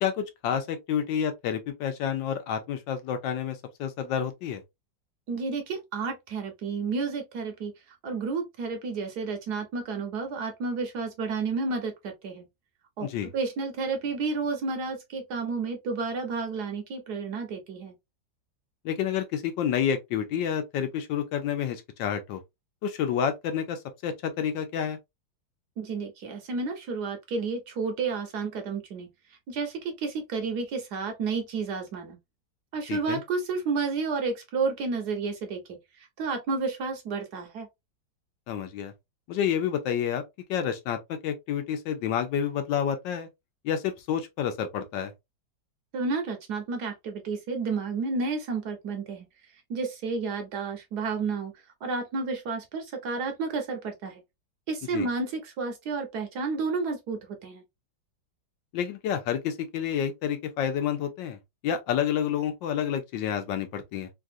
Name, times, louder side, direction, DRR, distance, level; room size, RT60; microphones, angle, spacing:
voice 1, 0.0-4.6 13.0-13.3 18.8-22.4 22.8-25.0 32.9-33.2 38.5-38.9 39.3-40.2 40.5-43.3 43.6-45.1 54.9-55.1 58.7-64.1, left 8 dB, 75° left, 1.3 m, -29 dB
voice 2, 5.3-12.5 13.0-13.1 13.3-17.9 25.8-29.1 29.5-32.2 32.7-35.6 36.0-37.7 45.9-49.3 49.7-54.2 54.7-57.6, right 4 dB, 65° right, 1.1 m, -31 dB
3.3 x 2.4 x 2.5 m
omnidirectional pair, 2.1 m